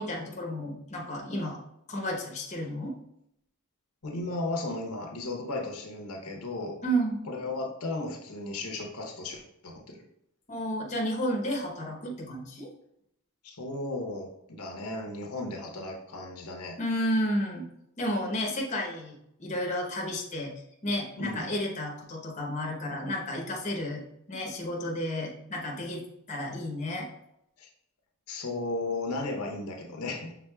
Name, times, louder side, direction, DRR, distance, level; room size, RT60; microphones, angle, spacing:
voice 1, 0.0-1.6 1.9-2.9 6.8-7.2 10.5-12.7 16.8-17.6 18.0-20.5 20.8-24.0 24.3-26.0 26.3-27.1, equal, 30° left, -1 dB, 0.9 m, -32 dB
voice 2, 4.0-6.8 7.3-10.0 13.4-16.8 21.2-21.4 27.6-27.7 28.3-30.3, left 2 dB, 75° left, 1 dB, 0.9 m, -35 dB
6.1 x 3.6 x 2.3 m, 0.77 s
head